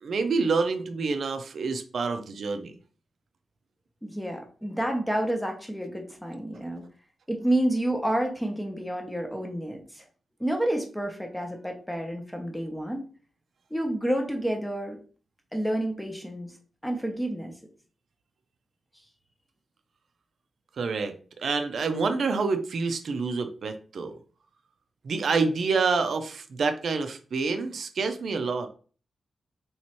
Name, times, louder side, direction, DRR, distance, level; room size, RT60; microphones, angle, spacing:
voice 1, 0.0-2.7 20.8-24.2 25.0-28.7, right 4 dB, 65° right, 8 dB, 0.5 m, -27 dB
voice 2, 4.0-6.8 7.3-10.0 10.4-13.0 13.7-15.0 15.5-16.5 16.8-17.5, right 1 dB, 5° left, 3 dB, 0.8 m, -29 dB
3.1 x 3.0 x 4.3 m, 0.40 s
wide cardioid pair, 135°, 0 cm